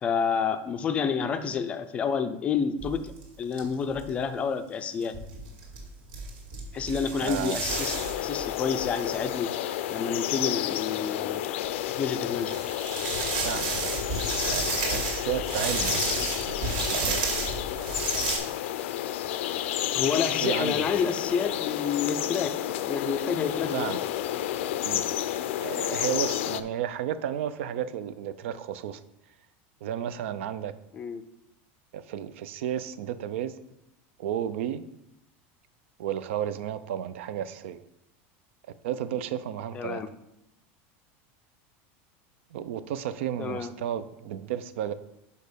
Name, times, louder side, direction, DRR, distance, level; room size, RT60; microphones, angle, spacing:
voice 1, 0.0-3.1 3.4-5.1 6.7-8.0 8.2-9.5 9.9-11.4 12.0-12.6 19.9-22.5 22.9-23.8 30.9-31.2 39.7-40.1 43.4-43.7, left 6 dB, 20° left, 9 dB, 0.4 m, -29 dB
sound 1, 2.8-3.2 3.5-3.6 3.9-4.1 5.0-9.0 10.5-10.6 11.4-11.5 12.3-18.4, right 4 dB, 65° right, 2.1 m, -31 dB
voice 2, 7.2-7.6 13.4-13.9 14.5-17.3 20.4-20.9 23.7-24.0 24.8-25.1 25.6-29.0 29.8-30.7 31.9-33.5 34.2-34.8 36.0-37.8 38.8-40.0 42.5-44.9, right 10 dB, 85° right, 13 dB, 0.5 m, -33 dB
sound 2, 7.7-26.6, left 12 dB, 85° left, 0.4 m, -31 dB
6.5 x 5.4 x 5.1 m, 0.85 s
supercardioid pair, 175°, 7 cm